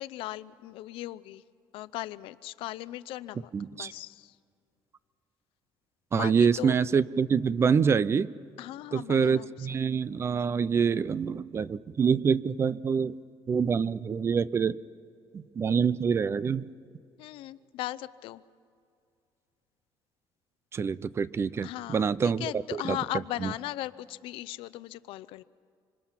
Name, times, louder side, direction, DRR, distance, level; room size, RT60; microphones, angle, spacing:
voice 1, 0.0-1.4 1.7-4.3 6.1-6.7 8.6-9.8 17.2-18.4 21.6-25.4, left 15 dB, 90° left, 15 dB, 0.6 m, -38 dB
voice 2, 3.5-3.9 6.1-8.3 8.9-13.2 13.5-14.8 15.3-16.7 20.7-23.0 23.4-23.5, right 6 dB, 30° right, 18 dB, 0.5 m, -26 dB
26.0 x 26.0 x 5.9 m, 2.4 s
cardioid pair, 145°, 9 cm